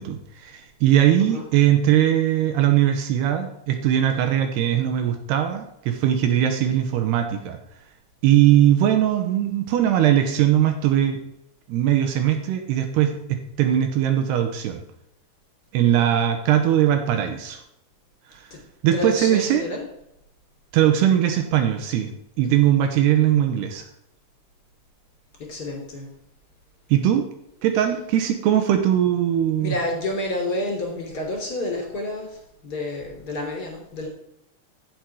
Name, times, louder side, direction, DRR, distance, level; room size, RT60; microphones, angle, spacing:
voice 1, 0.0-7.6 8.2-11.2 11.7-14.8 15.7-17.6 18.8-19.7 20.7-22.1 22.4-23.8 26.9-27.3 27.6-29.7, right 11 dB, 75° right, 5 dB, 2.6 m, -20 dB
voice 2, 18.9-19.9 22.4-22.6 25.4-26.1 27.7-27.9 29.6-34.1, left 1 dB, 25° left, 1 dB, 2.8 m, -29 dB
14.5 x 6.1 x 4.7 m, 0.81 s
omnidirectional pair, 5.5 m